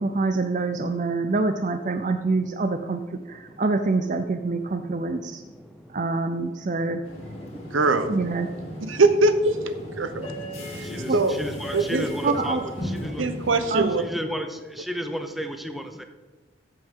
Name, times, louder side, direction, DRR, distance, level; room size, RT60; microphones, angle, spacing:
voice 1, 0.0-3.0 3.3-5.4 5.9-7.0 8.1-8.5 11.1-11.2 12.2-12.7 13.7-13.9, right 3 dB, 40° right, 7 dB, 0.5 m, -26 dB
sound 1, 7.0-14.1, left 1 dB, 30° left, 2.7 m, -36 dB
voice 2, 7.7-8.2 8.8-10.3 10.7-11.3 11.7-12.0 13.2-14.0, right 3 dB, 85° right, 9 dB, 0.9 m, -22 dB
voice 3, 10.9-12.6 13.0-13.2 14.0-14.5 14.8-16.0, equal, ahead, 6 dB, 0.6 m, -32 dB
14.0 x 7.9 x 3.7 m, 1.3 s
head